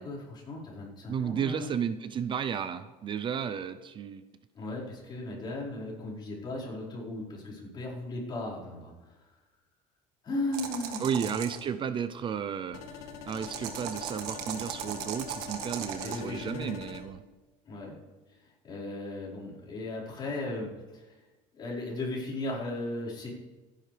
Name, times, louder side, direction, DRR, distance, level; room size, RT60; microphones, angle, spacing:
voice 1, 0.0-1.7 4.5-9.1 10.2-11.3 16.0-16.7 17.6-18.0 18.6-21.1 21.5-23.3, left 2 dB, 30° left, -6 dB, 4.9 m, -36 dB
voice 2, 1.1-4.3 11.0-12.8 13.3-17.2, right 7 dB, 30° right, 12 dB, 0.6 m, -33 dB
sound 1, 10.5-11.6 13.3-16.2, right 9 dB, 75° right, 1.6 m, -38 dB
sound 2, 12.7-17.0, left 5 dB, 85° left, 2.4 m, -44 dB
25.5 x 10.5 x 3.4 m, 1.2 s
cardioid pair, 145°, 16 cm